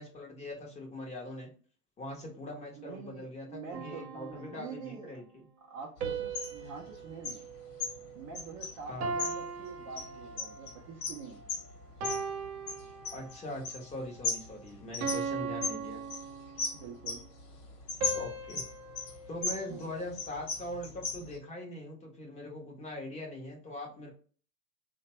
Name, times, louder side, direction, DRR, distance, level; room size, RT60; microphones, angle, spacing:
voice 1, 0.0-1.5 2.0-5.4 8.9-9.1 13.1-16.0 18.1-18.6 19.3-24.1, left 1 dB, 15° left, 0 dB, 0.6 m, -42 dB
voice 2, 2.8-5.2 5.7-7.4 8.1-11.4 16.7-17.3 19.7-19.9, right 5 dB, 30° right, -1 dB, 0.4 m, -45 dB
sound 1, 3.7-5.0 6.0-8.5 9.0-10.7 11.3-11.5 12.0-13.5 14.0-14.3 15.0-16.9 18.0-20.4, right 4 dB, 65° right, 0.8 m, -39 dB
sound 2, 6.0-21.4, left 4 dB, 50° left, 1.0 m, -39 dB
2.8 x 2.2 x 2.8 m, 0.41 s
hypercardioid pair, 100°, 47 cm